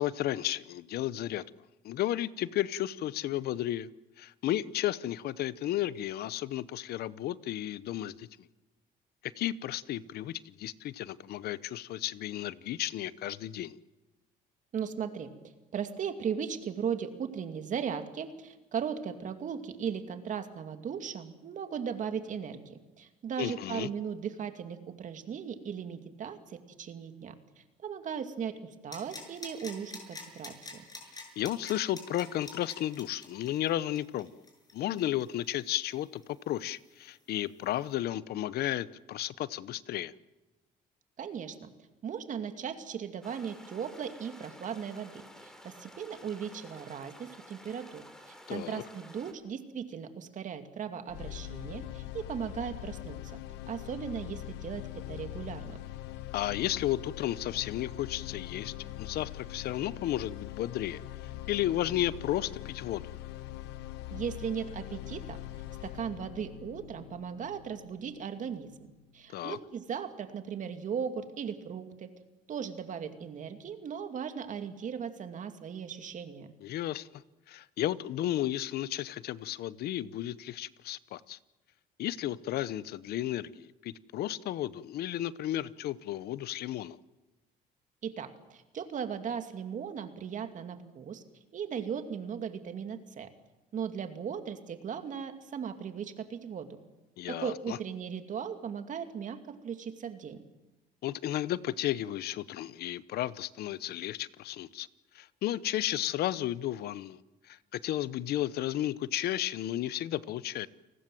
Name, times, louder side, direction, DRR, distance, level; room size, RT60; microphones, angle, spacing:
voice 1, 0.0-1.4 1.8-3.9 4.2-8.3 9.2-13.8 23.4-23.9 31.4-34.3 34.7-40.1 48.5-48.8 56.3-61.0 61.5-63.1 69.3-69.6 76.6-77.2 77.5-81.4 82.0-87.0 97.2-97.8 101.0-104.9 105.1-107.2 107.5-110.7, left 13 dB, 70° left, 18 dB, 0.8 m, -33 dB
voice 2, 14.7-15.3 15.7-27.3 27.8-30.8 41.2-41.7 42.0-53.2 53.7-55.8 64.1-65.4 65.8-68.7 69.1-72.1 72.5-76.5 88.0-91.2 91.5-93.3 93.7-96.7 97.3-100.4, right 7 dB, 50° right, 8 dB, 2.5 m, -37 dB
sound 1, 28.9-36.4 36.7-36.8, left 3 dB, 20° left, 7.0 m, -46 dB
sound 2, 43.2-49.3, equal, 5° left, 3.4 m, -52 dB
sound 3, 51.1-69.1, left 14 dB, 90° left, 1.1 m, -43 dB
29.5 x 19.0 x 7.7 m, 1.1 s
cardioid pair, 110°, 17 cm